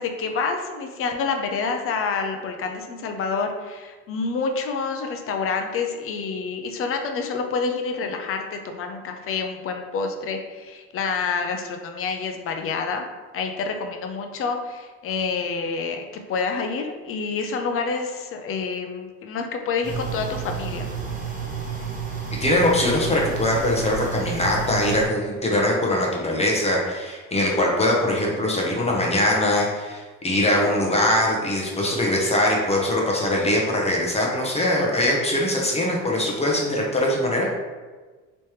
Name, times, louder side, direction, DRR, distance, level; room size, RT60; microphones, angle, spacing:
voice 1, 0.0-13.1 13.3-16.0 16.3-20.9, left 4 dB, 45° left, 5 dB, 0.5 m, -28 dB
sound 1, 19.8-25.1, right 6 dB, 25° right, 0.8 m, -31 dB
voice 2, 22.4-37.5, left 1 dB, 20° left, -2 dB, 0.8 m, -22 dB
3.3 x 3.0 x 3.1 m, 1.3 s
cardioid pair, 110°, 31 cm